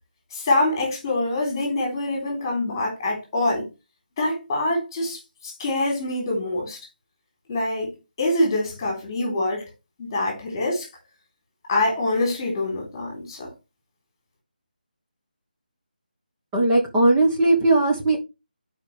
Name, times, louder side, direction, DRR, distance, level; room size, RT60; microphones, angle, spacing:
voice 1, 0.3-3.7 4.2-6.8 7.5-7.9 8.2-9.7 10.0-10.9 11.7-13.5, left 2 dB, 15° left, 3.3 m, -25 dB
voice 2, 16.5-18.2, right 2 dB, 10° right, 1.1 m, -18 dB
11.5 x 4.8 x 3.2 m
figure-of-eight pair, 170°, 5 cm